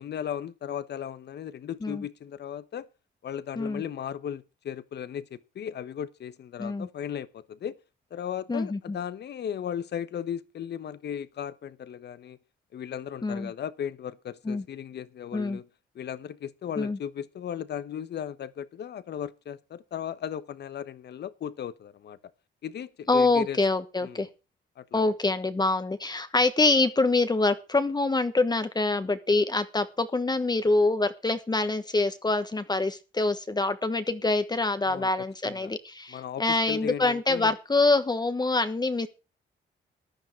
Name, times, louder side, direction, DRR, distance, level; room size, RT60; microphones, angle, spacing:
voice 1, 0.0-2.9 3.2-7.8 8.1-12.4 12.7-15.7 15.9-22.2 22.6-23.6 24.0-24.3 24.8-25.0 34.8-35.7 36.1-37.5, left 9 dB, 60° left, 1.1 m, -36 dB
voice 2, 8.5-9.0 13.2-13.5 14.5-14.6 15.3-15.6 16.8-17.0 23.1-24.3 24.9-39.1, left 3 dB, 20° left, 1.2 m, -25 dB
14.5 x 10.5 x 4.6 m
cardioid pair, 90°, 20 cm